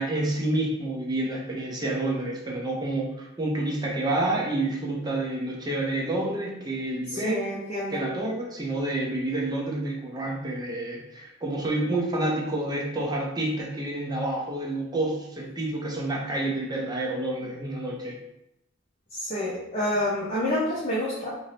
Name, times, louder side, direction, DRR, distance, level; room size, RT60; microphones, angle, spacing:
voice 1, 0.0-7.5 7.9-18.2, right 2 dB, 20° right, -1 dB, 0.6 m, -29 dB
voice 2, 7.1-8.0 19.1-21.3, left 1 dB, 30° left, -8 dB, 0.7 m, -28 dB
2.7 x 2.6 x 3.3 m, 0.84 s
head